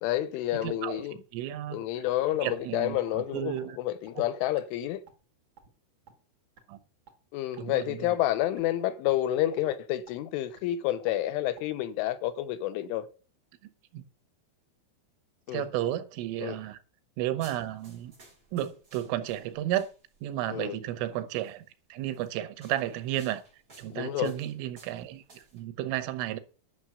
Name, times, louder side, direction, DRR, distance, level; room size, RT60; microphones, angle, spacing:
voice 1, 0.0-1.2 1.7-5.0 7.3-13.1 15.5-15.7 16.4-16.6 20.5-20.8 23.9-24.4, left 13 dB, 90° left, 3.4 m, -29 dB
voice 2, 0.6-1.0 1.3-1.8 2.4-3.0 3.3-3.8 6.7-6.8 7.6-8.1 13.9-14.0 15.5-16.8 17.2-18.1 18.5-19.9 20.2-23.4 23.8-26.4, right 13 dB, 90° right, 3.6 m, -33 dB
sound 1, 2.1-2.2 2.6-2.7 3.1-3.2 3.6-3.7 4.1-4.2 4.6-4.7 5.1-5.3 5.6-5.7 6.1-6.2 6.6-6.7 7.1-7.2 7.6-7.7 8.1-8.2 8.6-8.7 9.1-9.2 9.6-9.7 10.1-10.2 10.6-10.7 11.1-11.2 11.6-11.7 12.1-12.2, right 7 dB, 60° right, 1.2 m, -52 dB
sound 2, 17.4-20.3 21.3-21.6 22.1-25.6, right 2 dB, 20° right, 4.2 m, -56 dB
11.0 x 6.3 x 8.0 m
omnidirectional pair, 5.5 m